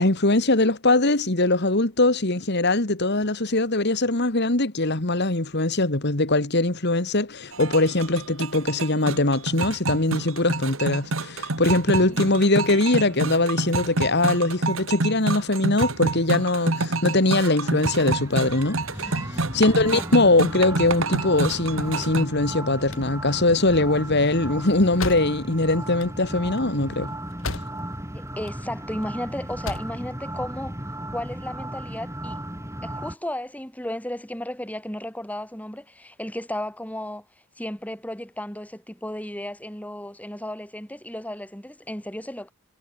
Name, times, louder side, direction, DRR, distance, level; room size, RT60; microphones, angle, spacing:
voice 1, 0.0-27.2, left 2 dB, 50° left, 2.4 m, -22 dB
sound 1, 7.5-22.3, right 3 dB, 70° right, 2.0 m, -28 dB
voice 2, 12.0-12.5 19.5-20.0 28.1-30.8 31.1-32.4 32.8-37.3 37.6-42.5, left 1 dB, 5° left, 7.8 m, -34 dB
sound 2, 17.2-33.2, right 1 dB, 15° right, 6.0 m, -35 dB
sound 3, 22.7-28.1 28.3-29.1 29.4-30.0, left 3 dB, 70° left, 3.2 m, -36 dB
head